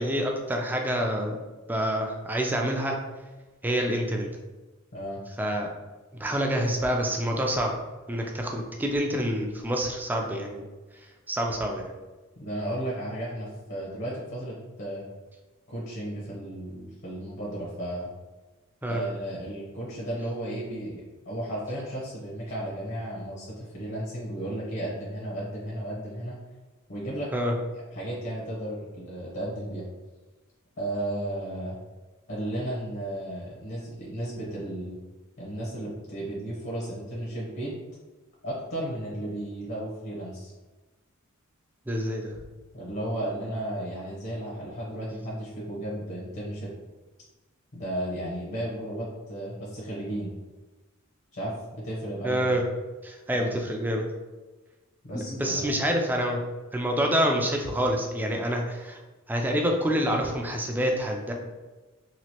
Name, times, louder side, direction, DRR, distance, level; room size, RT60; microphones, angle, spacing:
voice 1, 0.0-1.4 1.7-3.0 3.6-4.3 5.4-5.7 6.2-7.7 8.1-10.6 11.3-11.9 18.8-19.0 27.3-27.5 41.9-42.3 52.2-52.6 53.0-54.1 55.1-56.4 56.7-59.0 59.3-61.3, equal, 10° right, 1 dB, 0.3 m, -27 dB
voice 2, 12.4-15.0 15.7-18.1 18.9-26.3 26.9-27.3 27.9-29.8 30.8-31.7 32.3-35.0 35.4-37.7 38.4-40.5 42.7-46.7 47.7-50.3 51.3-52.7 53.3-53.6 55.0-55.7, right 1 dB, 55° left, -6 dB, 0.8 m, -34 dB
3.0 x 2.4 x 2.8 m, 1.2 s
head